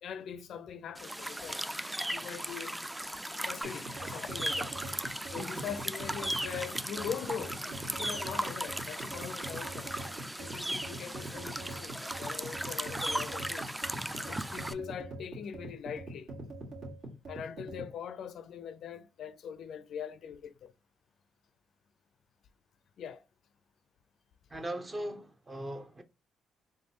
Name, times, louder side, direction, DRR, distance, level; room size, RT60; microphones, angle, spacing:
voice 1, 0.0-1.6 2.1-2.8 3.5-4.7 5.3-9.9 10.4-13.6 14.3-16.3 17.3-20.7 23.0-23.2, left 8 dB, 70° left, 0.4 m, -42 dB
sound 1, 0.9-14.7, right 1 dB, 10° right, 0.3 m, -37 dB
sound 2, 3.6-17.9, right 1 dB, 70° right, 1.8 m, -44 dB
voice 2, 5.4-5.7 24.5-26.0, right 1 dB, 25° right, 0.7 m, -39 dB
4.5 x 2.9 x 2.8 m
cardioid pair, 90°, 0 cm